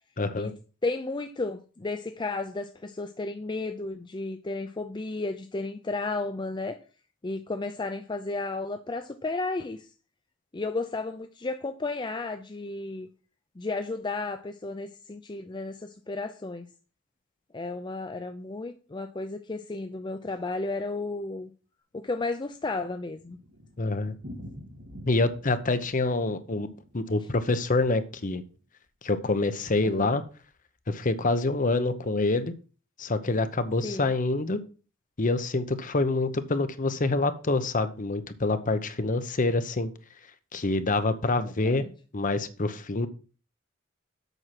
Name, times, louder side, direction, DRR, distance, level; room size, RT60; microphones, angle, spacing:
voice 1, 0.2-0.5 23.8-24.1 25.1-26.7 26.9-28.4 29.0-30.2 30.9-32.5 33.0-34.6 35.2-39.9 40.5-41.8 42.1-43.1, left 2 dB, 40° left, 11 dB, 0.9 m, -26 dB
voice 2, 0.8-6.8 7.2-9.9 10.5-13.1 13.6-16.7 17.5-21.5 21.9-23.4 29.8-30.2 33.8-34.1 41.4-41.9, left 3 dB, 25° left, 8 dB, 0.5 m, -33 dB
Thunder, 22.7-28.6 28.9-29.0 29.3-29.4 29.6-29.7 30.3-30.6, equal, 65° right, 2.4 m, -47 dB
8.1 x 6.0 x 5.9 m, 0.37 s
head